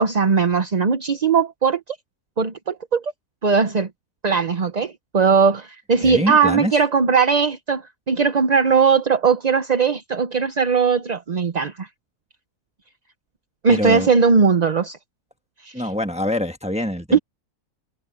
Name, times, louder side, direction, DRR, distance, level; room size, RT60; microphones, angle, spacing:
voice 1, 0.0-2.0 2.4-3.1 3.4-3.9 4.2-11.9 13.6-15.0 15.6-15.7 17.1-17.2, right 5 dB, 35° right, 0.7 m, -19 dB
voice 2, 6.0-6.7 13.7-14.1 15.7-17.2, equal, 5° right, 1.3 m, -24 dB
omnidirectional pair, 1.6 m